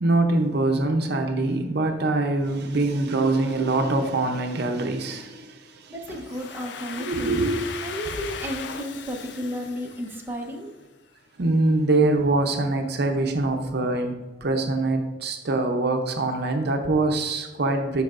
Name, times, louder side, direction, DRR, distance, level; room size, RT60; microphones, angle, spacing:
voice 1, 0.0-5.9 7.0-7.6 11.4-18.0, right 2 dB, 65° right, 4 dB, 0.7 m, -24 dB
voice 2, 5.9-7.4 7.8-10.7, equal, 10° right, 0 dB, 0.8 m, -33 dB
Domestic sounds home sounds, 6.1-10.8, left 6 dB, 70° left, 0.5 m, -38 dB
11.5 x 4.7 x 2.5 m, 1.1 s
head